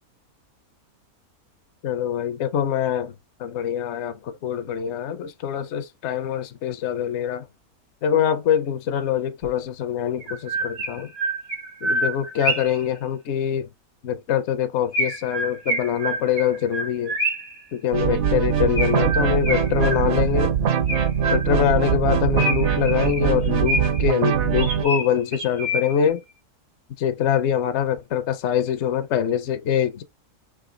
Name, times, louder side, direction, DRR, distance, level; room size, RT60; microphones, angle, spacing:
voice 1, 1.8-3.1 3.4-7.4 8.0-11.1 11.8-13.7 14.0-17.2 17.7-20.6 21.3-26.2 27.0-30.0, left 9 dB, 60° left, 0.8 m, -24 dB
Chirp tweet, 9.4-9.5 10.2-12.8 14.9-17.6 18.7-20.3 20.9-21.7 22.4-24.1 24.6-26.1, right 1 dB, 90° right, 2.7 m, -28 dB
sound 1, 17.9-24.8, right 8 dB, 60° right, 0.9 m, -22 dB
4.9 x 2.7 x 3.7 m
omnidirectional pair, 1.6 m